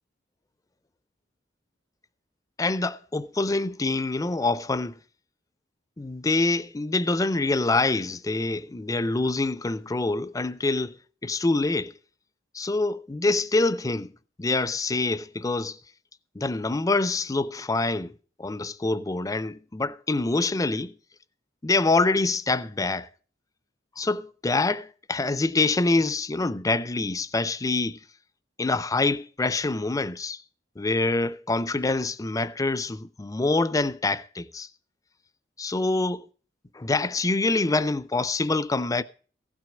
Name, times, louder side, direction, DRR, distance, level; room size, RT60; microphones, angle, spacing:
voice 1, 2.6-5.0 6.0-10.9 11.2-11.9 12.5-14.1 14.4-15.8 16.4-18.1 18.4-21.0 21.6-23.1 24.0-28.0 28.6-30.4 30.8-34.7 35.6-36.2 36.7-39.0, left 3 dB, 20° left, 0.5 m, -25 dB
16.0 x 6.2 x 7.2 m
head